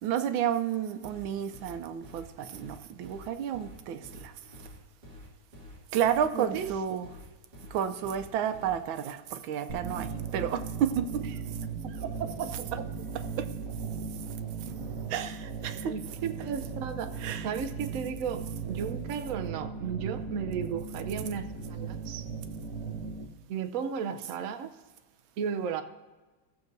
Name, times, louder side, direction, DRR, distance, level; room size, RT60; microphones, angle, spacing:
voice 1, 0.0-4.3 5.9-7.1 7.7-11.2 11.9-12.0 12.4-12.8 13.1-13.5 14.1-14.3 15.1-16.5 17.2-17.6 24.2-24.3, right 9 dB, 85° right, 10 dB, 1.4 m, -31 dB
sound 1, 1.0-8.8, left 1 dB, 25° right, 2.3 m, -48 dB
voice 2, 6.3-6.7 12.2-12.8 15.9-17.2 17.4-22.3 23.5-24.8 25.4-25.8, right 7 dB, 70° right, 7 dB, 0.8 m, -34 dB
sound 2, 9.7-23.2, right 5 dB, 50° right, 1.2 m, -37 dB
17.0 x 7.1 x 2.6 m, 1.2 s
omnidirectional pair, 2.1 m